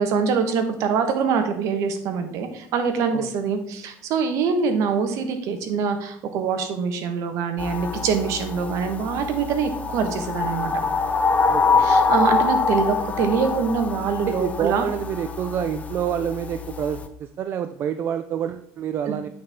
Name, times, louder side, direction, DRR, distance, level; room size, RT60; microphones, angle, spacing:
voice 1, 0.0-10.7 11.8-14.9 19.1-19.2, right 6 dB, 60° right, 7 dB, 1.1 m, -24 dB
sound 1, 7.6-17.1, left 4 dB, 25° left, 0.6 m, -25 dB
voice 2, 11.5-11.8 14.2-19.3, right 9 dB, 40° right, 9 dB, 0.4 m, -28 dB
8.6 x 4.3 x 3.5 m, 0.73 s
cardioid pair, 130°, 6 cm